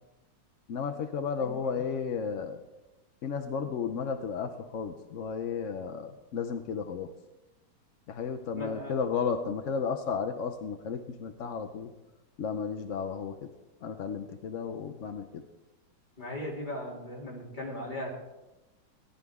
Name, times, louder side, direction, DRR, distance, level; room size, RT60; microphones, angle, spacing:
voice 1, 0.7-2.6 3.2-7.1 8.1-11.9 12.4-13.4 13.8-15.4, left 6 dB, 70° left, 6 dB, 0.7 m, -33 dB
voice 2, 1.4-1.8 8.5-9.0 16.2-18.1, left 1 dB, 25° left, -3 dB, 3.0 m, -38 dB
18.0 x 11.5 x 3.6 m, 1.0 s
omnidirectional pair, 2.1 m